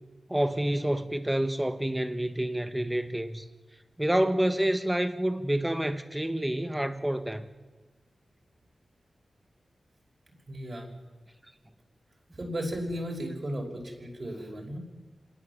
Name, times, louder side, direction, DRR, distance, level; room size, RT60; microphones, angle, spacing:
voice 1, 0.3-3.5 4.0-7.5, right 1 dB, 10° right, 1.4 m, -28 dB
voice 2, 10.5-10.9 12.3-14.8, equal, 40° right, 5.5 m, -35 dB
26.0 x 19.0 x 7.3 m
cardioid pair, 65°, 0 cm